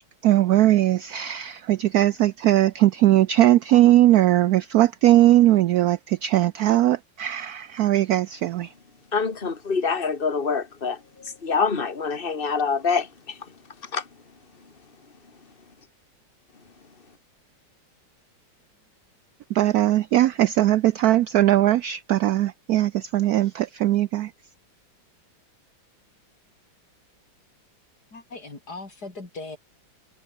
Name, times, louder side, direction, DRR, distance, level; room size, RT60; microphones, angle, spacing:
voice 1, 0.2-8.7 19.5-24.3, right 14 dB, 75° right, 0.9 m, -19 dB
voice 2, 9.1-13.5 13.8-14.1, left 5 dB, 30° left, 2.5 m, -26 dB
voice 3, 28.1-29.6, left 3 dB, 50° left, 5.1 m, -38 dB
omnidirectional pair, 2.1 m